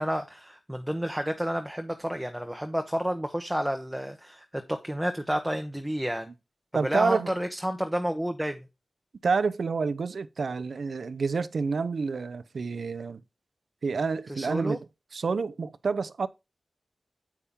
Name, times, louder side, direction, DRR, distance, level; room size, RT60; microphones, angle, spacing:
voice 1, 0.0-6.3 6.8-8.6 14.3-14.8, equal, 5° right, 0.8 m, -30 dB
voice 2, 6.7-7.3 9.2-13.2 13.8-14.8 15.1-16.3, right 4 dB, 80° right, 0.5 m, -28 dB
8.4 x 5.6 x 3.6 m
wide cardioid pair, 90°, 0 cm